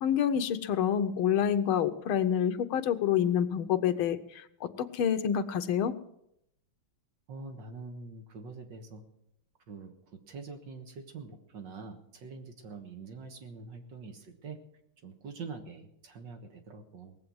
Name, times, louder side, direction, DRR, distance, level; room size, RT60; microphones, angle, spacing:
voice 1, 0.0-6.0, left 9 dB, 90° left, 8 dB, 1.7 m, -28 dB
voice 2, 7.3-9.0 9.7-9.9 10.3-14.6 15.0-17.2, right 4 dB, 65° right, 5 dB, 2.1 m, -45 dB
19.0 x 7.8 x 7.8 m, 0.76 s
omnidirectional pair, 2.2 m